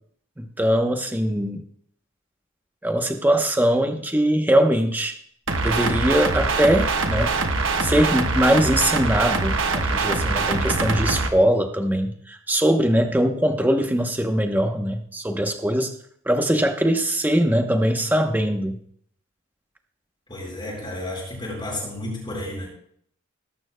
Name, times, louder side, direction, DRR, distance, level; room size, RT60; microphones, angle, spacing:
voice 1, 0.4-1.6 2.8-5.2 5.6-7.4 7.8-15.9 16.2-18.8, equal, 10° right, 5 dB, 0.8 m, -21 dB
sound 1, 5.5-11.3, right 3 dB, 65° right, 1.2 m, -23 dB
voice 2, 20.3-22.7, left 1 dB, 25° left, -6 dB, 4.8 m, -32 dB
20.0 x 11.5 x 2.2 m, 0.65 s
head